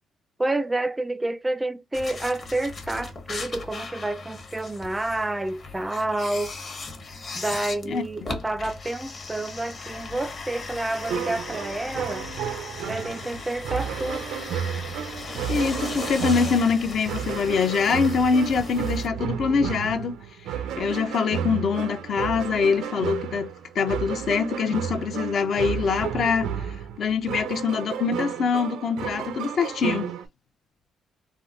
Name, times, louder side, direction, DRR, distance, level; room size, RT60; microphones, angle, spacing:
voice 1, 0.4-6.6 7.3-12.3 12.9-14.3, right 2 dB, 15° right, 0.4 m, -29 dB
sound 1, 1.9-19.1, left 3 dB, 45° left, 1.0 m, -37 dB
voice 2, 7.8-8.3 15.5-20.2 20.8-30.1, left 5 dB, 60° left, 0.6 m, -24 dB
sound 2, 11.0-30.3, right 8 dB, 90° right, 0.5 m, -32 dB
3.7 x 2.1 x 2.4 m
cardioid pair, 90°, 0 cm